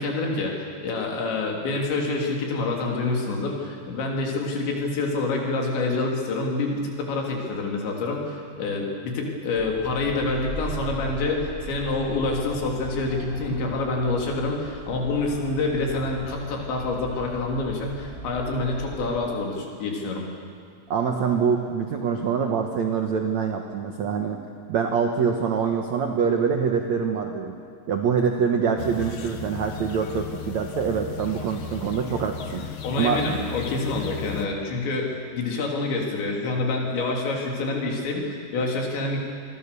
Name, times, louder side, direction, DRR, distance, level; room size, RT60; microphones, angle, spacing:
voice 1, 0.0-20.3 32.8-39.2, left 3 dB, 80° left, 0 dB, 5.5 m, -27 dB
sound 1, 9.5-19.3, right 2 dB, 15° right, 5.3 m, -39 dB
voice 2, 20.9-24.4 24.7-27.5 27.9-32.6 33.0-33.2, right 6 dB, 75° right, 3 dB, 1.7 m, -25 dB
sound 2, 28.8-34.5, left 7 dB, 65° left, 1.9 m, -36 dB
27.0 x 23.5 x 6.9 m, 2.2 s
omnidirectional pair, 5.1 m